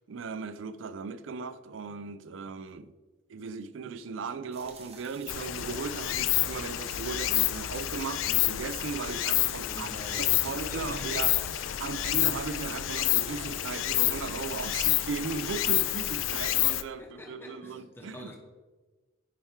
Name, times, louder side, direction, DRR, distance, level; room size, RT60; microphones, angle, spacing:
voice 1, 0.0-2.9 3.3-9.9 10.4-11.3 11.8-18.3, right 5 dB, 75° right, 0.4 m, -37 dB
sound 1, 4.5-15.1 15.6-15.7, right 3 dB, 35° right, 0.9 m, -50 dB
Stream, 5.3-16.8, left 14 dB, 80° left, 0.4 m, -29 dB
voice 2, 9.6-11.5 11.9-12.1 17.0-18.4, left 1 dB, 10° left, 1.1 m, -45 dB
9.7 x 3.6 x 4.6 m
head